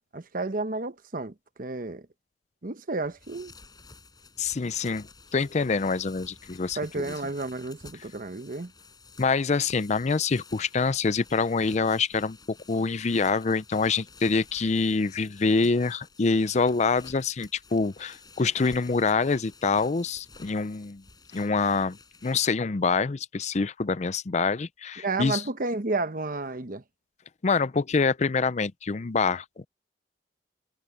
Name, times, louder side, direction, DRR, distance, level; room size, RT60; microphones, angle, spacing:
voice 1, 0.1-2.1 2.6-3.5 6.8-8.7 25.0-26.8, right 3 dB, 50° right, 1.0 m, -31 dB
sound 1, 3.0-22.6, left 4 dB, 25° left, 4.9 m, -52 dB
voice 2, 4.4-7.1 9.2-21.0 21.3-22.0 22.2-25.4 27.4-29.6, left 4 dB, 40° left, 0.5 m, -26 dB
head